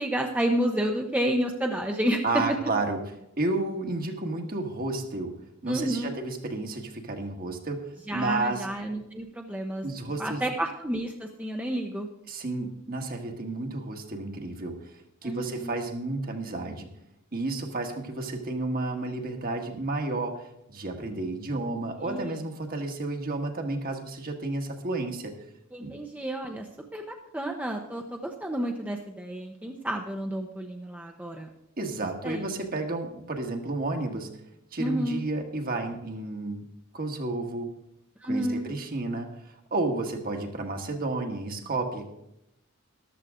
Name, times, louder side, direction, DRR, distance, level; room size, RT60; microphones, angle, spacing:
voice 1, 0.0-2.2 5.7-6.1 8.1-9.9 10.2-12.1 15.2-15.9 22.0-22.3 25.7-26.7 26.9-31.5 32.2-32.6 34.8-35.2 38.2-38.6, right 1 dB, 5° right, 2 dB, 0.8 m, -30 dB
voice 2, 2.2-3.0 3.4-5.3 5.6-8.7 9.8-10.4 12.3-14.9 15.2-16.9 17.3-25.3 25.8-25.9 31.8-34.3 34.7-36.6 36.9-37.7 38.3-42.1, right 2 dB, 45° right, 4 dB, 1.6 m, -31 dB
13.5 x 12.0 x 3.7 m, 0.83 s
head